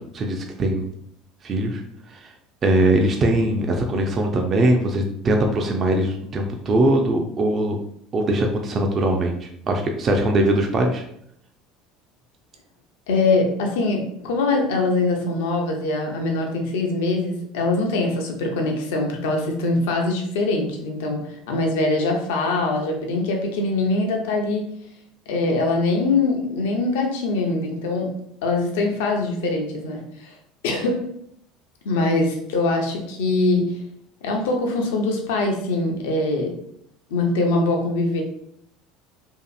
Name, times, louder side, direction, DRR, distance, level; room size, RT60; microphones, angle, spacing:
voice 1, 0.1-0.9 1.4-1.8 2.1-2.3 2.6-7.8 8.1-11.0, right 1 dB, 40° right, 2 dB, 0.4 m, -21 dB
voice 2, 13.1-24.7 25.3-28.1 28.4-30.3 30.6-31.0 31.8-33.8 34.2-36.6 37.1-38.2, left 2 dB, 70° left, 2 dB, 0.5 m, -23 dB
2.7 x 2.5 x 2.4 m, 0.70 s
hypercardioid pair, 70°, 0 cm